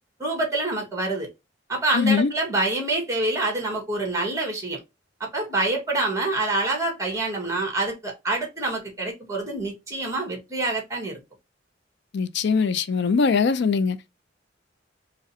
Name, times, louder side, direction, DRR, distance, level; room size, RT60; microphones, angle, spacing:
voice 1, 0.2-1.3 1.7-4.8 5.2-11.2, right 2 dB, 15° right, 1.5 m, -26 dB
voice 2, 1.9-2.3 12.1-14.1, left 5 dB, 65° left, 0.4 m, -22 dB
4.8 x 2.2 x 2.7 m
head